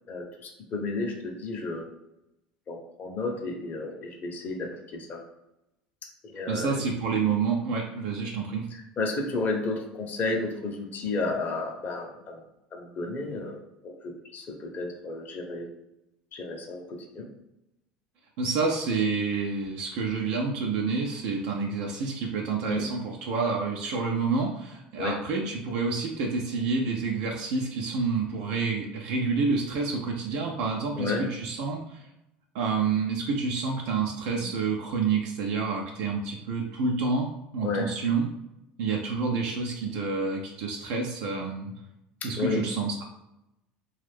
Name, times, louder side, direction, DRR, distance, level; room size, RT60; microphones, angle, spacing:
voice 1, 0.1-1.8 2.7-5.2 6.2-6.8 8.7-12.4 12.7-15.7 16.3-17.3 22.7-22.9 25.0-25.2 30.9-31.2 34.3-34.5 37.6-37.9 42.2-42.6, left 3 dB, 40° left, 1 dB, 0.7 m, -32 dB
voice 2, 6.5-8.7 18.4-32.1 32.5-38.3 38.8-41.7 42.2-43.0, right 4 dB, 70° right, 0 dB, 0.5 m, -28 dB
2.5 x 2.3 x 3.4 m, 0.88 s
hypercardioid pair, 80°, 5 cm